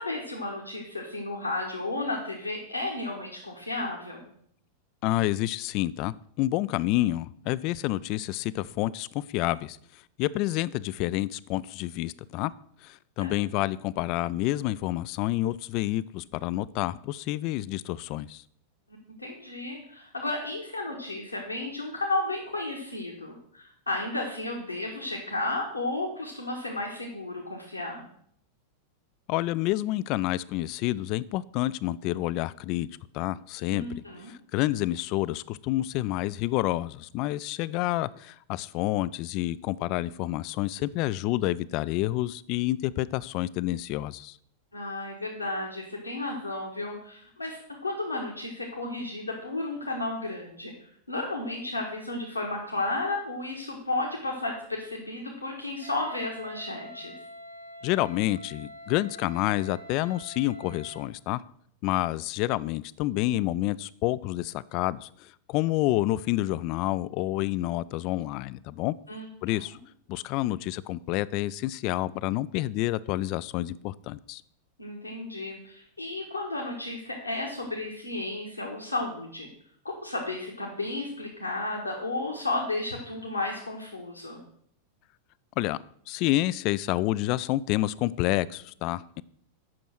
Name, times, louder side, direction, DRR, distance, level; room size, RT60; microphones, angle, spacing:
voice 1, 0.0-4.3 13.2-13.4 19.2-28.0 33.7-34.3 44.7-57.1 69.1-69.6 74.8-79.5 79.8-84.4, left 2 dB, 85° left, -2 dB, 1.4 m, -33 dB
voice 2, 5.0-9.8 10.2-12.5 12.8-18.4 29.3-32.9 33.1-44.4 57.8-61.4 61.8-68.9 69.4-69.8 70.1-74.4 85.6-89.2, left 16 dB, 40° left, 19 dB, 0.3 m, -29 dB
Wind instrument woodwind instrument, 55.8-61.2, equal, 75° right, 1.8 m, -46 dB
8.5 x 6.2 x 6.1 m, 0.65 s
figure-of-eight pair, 90°, 0 cm